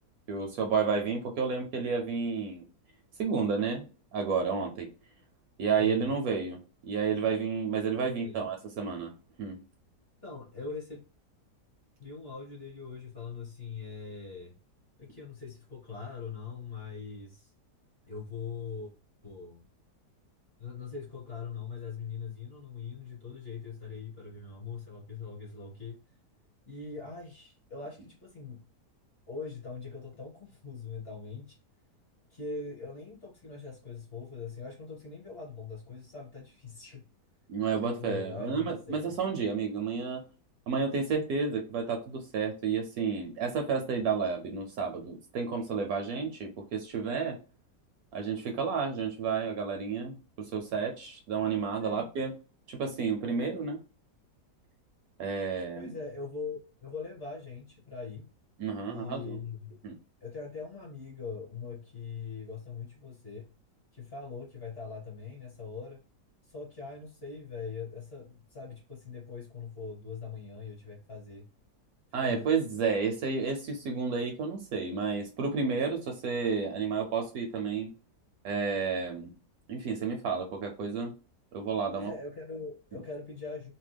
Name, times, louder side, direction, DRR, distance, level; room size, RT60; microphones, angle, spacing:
voice 1, 0.3-2.7 3.2-3.8 4.1-4.9 5.6-9.1 9.4-9.6 37.5-40.2 40.7-47.4 48.1-52.3 52.7-53.8 55.2-55.9 58.6-59.4 59.8-60.0 72.1-77.9 78.4-79.3 79.7-81.1 81.5-82.1, right 5 dB, 70° right, 3 dB, 0.9 m, -31 dB
voice 2, 8.0-8.4 10.2-11.0 12.0-14.5 15.0-17.5 18.0-18.9 19.2-19.6 20.6-26.0 26.6-28.6 29.3-31.6 32.3-37.0 37.8-39.0 51.8-52.1 55.7-58.3 58.8-59.8 60.2-63.5 63.9-66.0 66.4-71.5 72.2-72.5 81.9-83.7, left 5 dB, 40° left, -2 dB, 1.1 m, -42 dB
2.9 x 2.1 x 3.2 m, 0.34 s
omnidirectional pair, 1.8 m